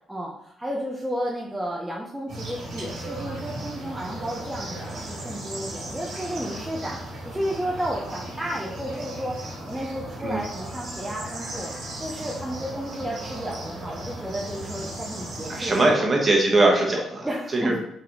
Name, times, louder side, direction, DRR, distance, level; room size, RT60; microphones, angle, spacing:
voice 1, 0.1-7.0 7.2-9.3 9.7-11.7 12.0-16.1 17.2-17.8, equal, 5° right, -3 dB, 0.6 m, -32 dB
sound 1, 2.3-15.8, right 1 dB, 70° right, 1.3 m, -36 dB
voice 2, 15.5-17.3 17.5-17.8, right 2 dB, 30° right, -1 dB, 1.1 m, -21 dB
3.8 x 3.2 x 3.0 m, 0.73 s
cardioid pair, 90°, 0 cm